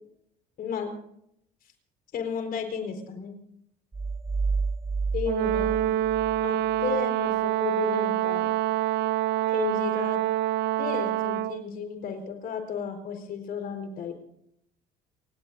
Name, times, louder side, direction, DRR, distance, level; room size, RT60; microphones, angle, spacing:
voice 1, 0.6-0.9 2.1-3.4 5.1-5.8 6.4-8.5 9.5-10.2 10.8-14.1, left 7 dB, 60° left, 5 dB, 4.4 m, -33 dB
sound 1, 3.9-6.8, right 4 dB, 15° right, 0.7 m, -30 dB
Brass instrument, 5.3-11.6, right 13 dB, 85° right, 0.5 m, -26 dB
29.0 x 17.0 x 2.6 m, 0.74 s
cardioid pair, 110°, 17 cm